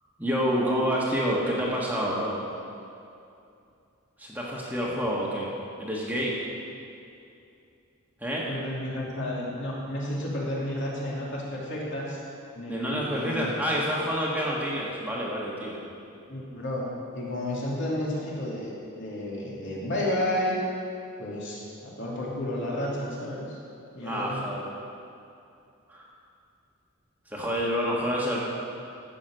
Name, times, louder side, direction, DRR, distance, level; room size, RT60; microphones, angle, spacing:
voice 1, 0.2-2.3 4.2-5.5 5.8-6.4 8.2-8.4 12.7-15.8 24.0-24.6 25.9-26.0 27.3-28.4, equal, 10° right, -5 dB, 1.5 m, -28 dB
voice 2, 8.5-12.2 12.5-13.5 16.3-16.9 17.1-18.7 19.0-20.5 21.2-23.6 23.9-24.4, left 1 dB, 55° left, -5 dB, 2.9 m, -31 dB
15.0 x 6.2 x 6.6 m, 2.6 s
head